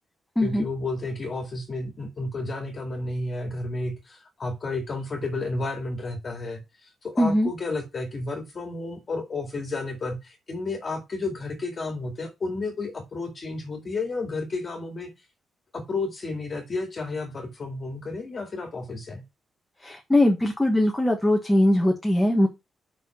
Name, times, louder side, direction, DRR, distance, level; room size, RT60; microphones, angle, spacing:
voice 1, 0.4-15.1 15.7-19.2, left 3 dB, 35° left, 2.1 m, -32 dB
voice 2, 7.2-7.5 19.8-22.5, left 1 dB, 5° left, 1.3 m, -21 dB
5.8 x 5.5 x 5.9 m
wide cardioid pair, 165°, 0 cm